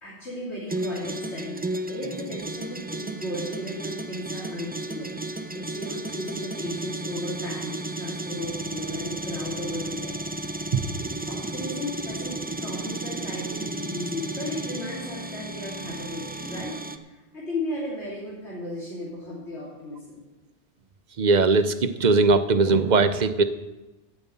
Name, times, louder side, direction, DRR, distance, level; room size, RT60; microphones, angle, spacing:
voice 1, 0.0-1.6 1.9-10.7 11.3-16.8 17.0-20.2, left 1 dB, 85° left, -7 dB, 3.2 m, -35 dB
sound 1, 0.7-17.0, right 2 dB, 15° right, 0.4 m, -33 dB
voice 2, 21.2-23.4, right 3 dB, 45° right, 10 dB, 0.8 m, -20 dB
9.2 x 9.2 x 8.3 m, 1.1 s
omnidirectional pair, 1.1 m